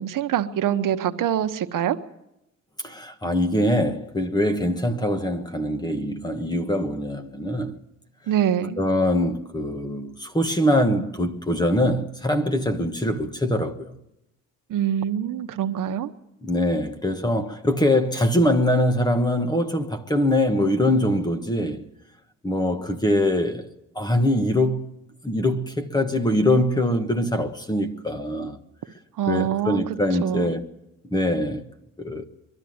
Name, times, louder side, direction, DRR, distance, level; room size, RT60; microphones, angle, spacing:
voice 1, 0.0-2.0 8.3-8.8 14.7-16.1 29.2-30.0 30.2-30.5, right 10 dB, 75° right, 1.0 m, -24 dB
voice 2, 2.8-7.8 8.8-13.9 16.4-21.8 22.4-23.7 23.9-24.9 25.2-28.6 29.3-30.6 31.1-31.6 32.0-32.2, left 1 dB, 15° left, 1.3 m, -23 dB
22.5 x 12.0 x 9.4 m
cardioid pair, 120°, 32 cm